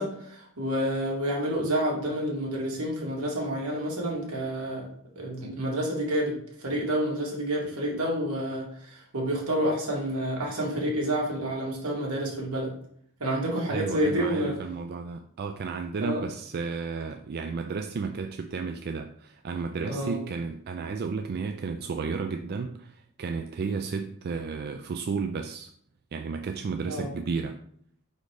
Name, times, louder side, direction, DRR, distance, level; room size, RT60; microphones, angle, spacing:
voice 1, 0.0-4.9 5.2-12.7 13.2-14.6 16.0-16.2 19.8-20.2 26.9-27.1, right 1 dB, 75° right, -2 dB, 2.1 m, -29 dB
voice 2, 13.7-25.7 26.1-27.6, right 4 dB, 45° right, 5 dB, 0.4 m, -33 dB
5.1 x 4.2 x 4.8 m, 0.65 s
head